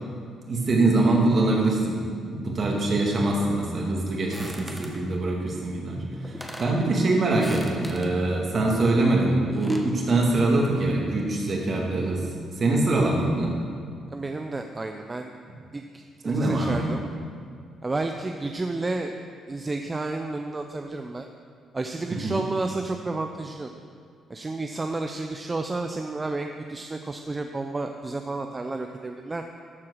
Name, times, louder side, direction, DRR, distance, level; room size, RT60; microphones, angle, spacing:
voice 1, 0.5-12.2 12.6-13.6 16.2-16.9 22.1-22.3, right 2 dB, 45° right, -1 dB, 2.2 m, -24 dB
sound 1, 4.3-5.0 5.9-6.0 6.2-6.8 7.3-8.1 9.3-9.9, equal, ahead, 1.2 m, -40 dB
voice 2, 14.1-15.3 15.7-17.0 17.8-19.1 19.5-21.3 21.7-23.7 24.3-29.4, right 2 dB, 25° right, 5 dB, 0.5 m, -31 dB
13.0 x 4.6 x 6.4 m, 2.2 s
cardioid pair, 90°, 0 cm